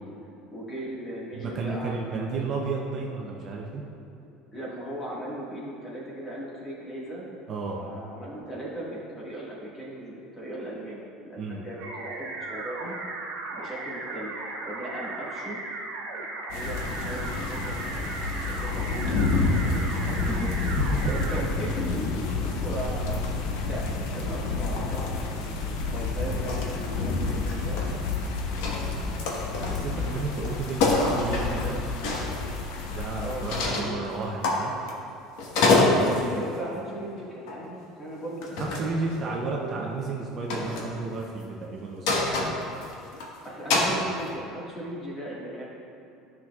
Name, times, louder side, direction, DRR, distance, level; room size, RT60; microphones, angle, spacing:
voice 1, 0.5-2.5 4.5-7.3 7.8-12.9 13.5-14.4 14.6-15.6 16.5-18.1 18.4-20.5 21.0-23.9 24.1-27.9 33.2-33.9 35.8-40.0 43.4-45.7, right 1 dB, 20° left, -6 dB, 1.7 m, -37 dB
voice 2, 1.3-3.8 7.5-7.8 11.4-11.6 20.2-20.4 20.9-21.0 28.8-31.8 32.9-34.7 38.6-42.1, right 4 dB, 30° right, -1 dB, 0.6 m, -33 dB
sound 1, 11.8-21.4, right 3 dB, 75° right, 1.4 m, -36 dB
sound 2, 16.5-33.6, left 3 dB, 90° left, 0.9 m, -29 dB
sound 3, 26.5-26.7 27.0-28.2 28.5-30.0 30.4-30.5 30.8-32.3 33.5-33.9 34.4-35.1 35.4-36.3 37.5-37.7 38.4-38.9 40.5-40.9 42.1-43.2 43.7-44.0, left 3 dB, 75° left, 1.2 m, -25 dB
12.5 x 6.0 x 2.4 m, 2.7 s
cardioid pair, 170°, 0 cm